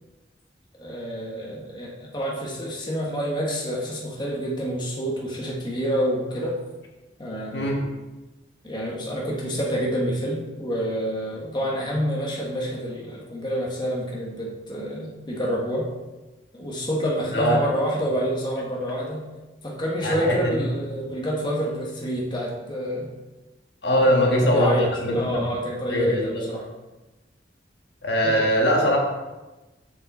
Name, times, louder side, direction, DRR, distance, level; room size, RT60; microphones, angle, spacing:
voice 1, 0.8-6.6 7.2-7.7 8.6-15.9 16.5-19.3 19.6-23.1 24.0-26.7 28.2-28.5, equal, 25° left, -3 dB, 1.3 m, -28 dB
voice 2, 7.5-7.8 17.3-17.6 20.0-20.6 23.8-25.4 25.9-26.5 28.0-29.0, equal, 75° left, 0 dB, 1.5 m, -21 dB
6.9 x 6.6 x 4.2 m, 1.1 s
head